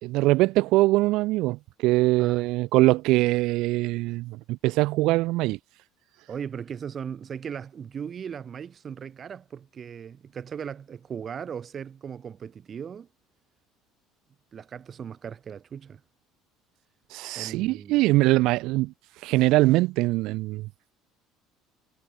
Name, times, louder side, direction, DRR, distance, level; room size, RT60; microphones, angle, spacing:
voice 1, 0.0-5.6 17.1-20.9, right 20 dB, 60° right, 4.1 m, -23 dB
voice 2, 6.3-13.1 14.5-16.0 17.3-18.0, right 7 dB, 25° right, 6.5 m, -38 dB
cardioid pair, 160°, 0 cm